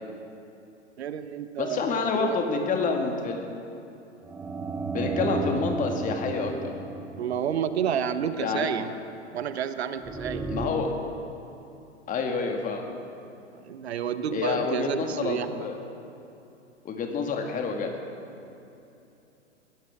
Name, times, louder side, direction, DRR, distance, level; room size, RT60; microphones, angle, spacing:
voice 1, 1.0-2.4 7.2-8.9 9.3-10.5 13.5-15.7, right 8 dB, 60° right, 11 dB, 1.0 m, -30 dB
voice 2, 1.6-3.4 4.9-6.7 8.4-8.7 10.5-10.9 12.1-12.9 14.3-15.7 16.8-17.9, left 4 dB, 20° left, 3 dB, 2.0 m, -28 dB
sound 1, 4.2-8.2 10.0-10.7, right 3 dB, 5° right, 0.4 m, -33 dB
22.5 x 16.5 x 3.7 m, 2.8 s
figure-of-eight pair, 105°, 35 cm